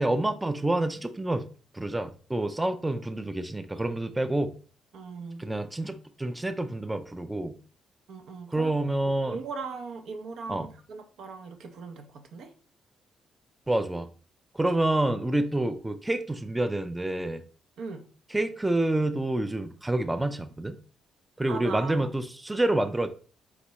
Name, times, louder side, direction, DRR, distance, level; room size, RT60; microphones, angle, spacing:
voice 1, 0.0-1.4 1.7-4.5 5.4-7.6 8.5-9.4 10.5-10.7 13.7-14.1 14.5-17.4 18.3-20.8 21.4-23.1, right 1 dB, 10° right, 8 dB, 0.4 m, -28 dB
voice 2, 4.9-5.5 8.1-8.7 9.0-12.5 17.8-18.0 21.5-22.1, right 4 dB, 75° right, 5 dB, 0.6 m, -39 dB
4.1 x 3.6 x 3.0 m, 0.40 s
cardioid pair, 90°, 0 cm